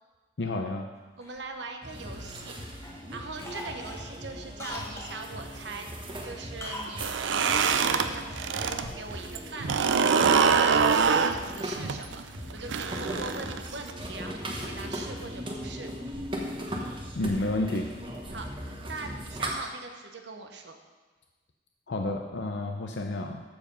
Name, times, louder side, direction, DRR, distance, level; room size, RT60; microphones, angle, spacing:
voice 1, 0.4-0.9 17.2-17.9 21.9-23.4, left 2 dB, 70° left, 4 dB, 0.6 m, -30 dB
Cough, 1.2-2.5 2.8-3.1 3.4-5.2 6.6-7.0 7.2-7.3, left 1 dB, 15° left, 1.1 m, -41 dB
voice 2, 1.2-2.6 3.1-5.9 6.2-9.9 10.3-12.2 12.5-15.9 18.3-20.8, right 3 dB, 70° right, 5 dB, 1.1 m, -41 dB
sound 1, 1.8-19.5, equal, 25° right, 1.3 m, -38 dB
sound 2, 6.9-8.8 9.1-13.9, right 6 dB, 85° right, 0.6 m, -24 dB
14.0 x 4.9 x 5.5 m, 1.3 s
head